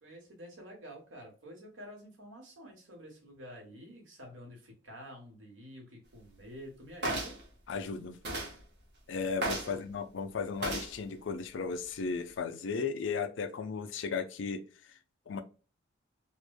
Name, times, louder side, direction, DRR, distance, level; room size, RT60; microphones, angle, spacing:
voice 1, 0.0-7.4 9.6-9.8, equal, 80° right, 1.1 m, -49 dB
sound 1, 7.0-7.4 8.2-8.5 9.4-9.7 10.6-10.9 11.7-11.9, right 1 dB, 55° right, 0.9 m, -34 dB
voice 2, 7.7-8.2 9.1-15.0 15.3-15.4, left 5 dB, 70° left, 0.4 m, -35 dB
3.1 x 2.1 x 2.2 m
head